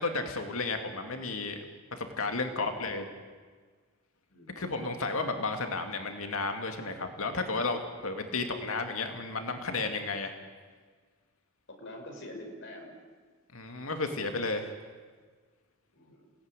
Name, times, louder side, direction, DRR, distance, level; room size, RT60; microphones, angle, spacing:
voice 1, 0.0-1.6 1.9-3.0 4.6-10.3 13.5-14.7, left 3 dB, 80° left, 5 dB, 2.4 m, -33 dB
voice 2, 2.5-3.0 4.3-4.6 11.7-13.0 15.9-16.3, left 1 dB, 60° left, 3 dB, 6.0 m, -45 dB
28.5 x 18.5 x 9.9 m, 1.5 s
head